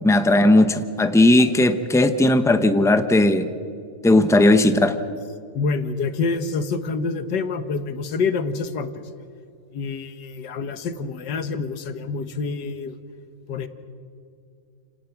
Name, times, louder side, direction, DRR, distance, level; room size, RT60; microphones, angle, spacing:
voice 1, 0.0-3.5 4.0-5.0, left 1 dB, 5° left, 9 dB, 0.5 m, -17 dB
voice 2, 5.6-8.9 9.7-13.0 13.5-13.7, left 4 dB, 85° left, 11 dB, 1.8 m, -27 dB
30.0 x 18.0 x 5.9 m, 2.4 s
omnidirectional pair, 1.8 m